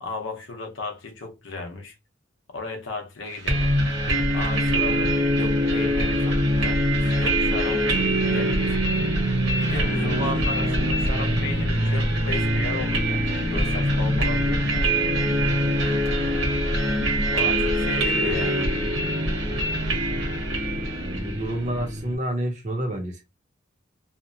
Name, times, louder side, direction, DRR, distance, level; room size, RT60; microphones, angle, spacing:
voice 1, 0.0-2.0 2.5-3.7 4.3-8.8 9.6-13.2 13.5-15.0 17.3-18.7, left 3 dB, 70° left, 0.7 m, -35 dB
sound 1, 3.5-22.2, equal, 65° right, 1.0 m, -23 dB
voice 2, 21.0-23.2, right 1 dB, 35° right, 0.7 m, -29 dB
2.8 x 2.1 x 2.6 m
head